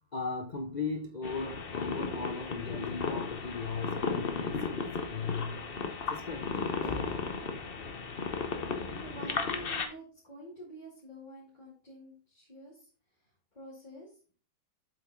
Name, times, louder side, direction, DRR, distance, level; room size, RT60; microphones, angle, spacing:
voice 1, 0.1-4.6 5.1-5.6 6.1-7.5, left 4 dB, 85° left, 5 dB, 0.4 m, -37 dB
sound 1, 1.2-9.8, left 5 dB, 45° left, 0.8 m, -35 dB
voice 2, 9.0-14.1, right 1 dB, 25° left, -7 dB, 2.4 m, -48 dB
7.9 x 5.2 x 3.8 m, 0.38 s
omnidirectional pair, 2.1 m